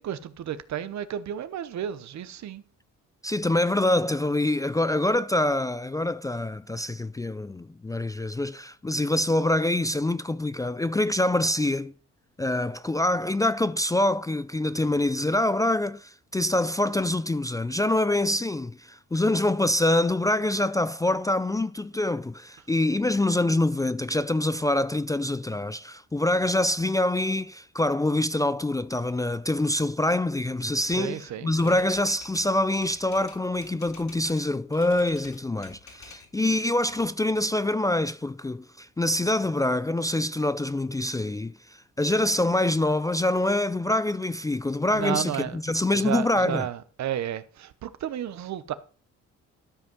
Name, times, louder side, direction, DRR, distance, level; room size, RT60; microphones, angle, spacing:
voice 1, 0.0-2.6 30.9-31.7 44.9-45.6 45.9-48.7, right 10 dB, 65° right, 1.0 m, -32 dB
voice 2, 3.2-11.9 12.4-41.6 42.0-46.7, left 1 dB, 10° left, 0.4 m, -25 dB
Typewriter, 31.5-34.5 34.7-36.3 36.6-37.7, left 5 dB, 65° left, 3.9 m, -49 dB
13.0 x 5.3 x 5.4 m
cardioid pair, 90°, 30 cm